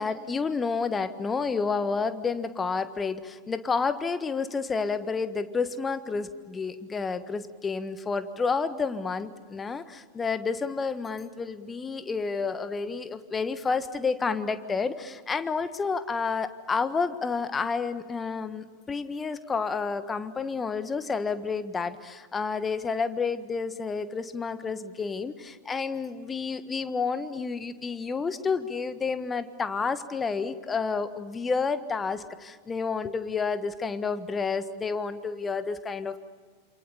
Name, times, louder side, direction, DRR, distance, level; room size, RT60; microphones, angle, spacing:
voice 1, 0.0-36.2, left 5 dB, 15° left, 12 dB, 1.5 m, -30 dB
28.0 x 28.0 x 7.2 m, 1.5 s
figure-of-eight pair, 90°, 0 cm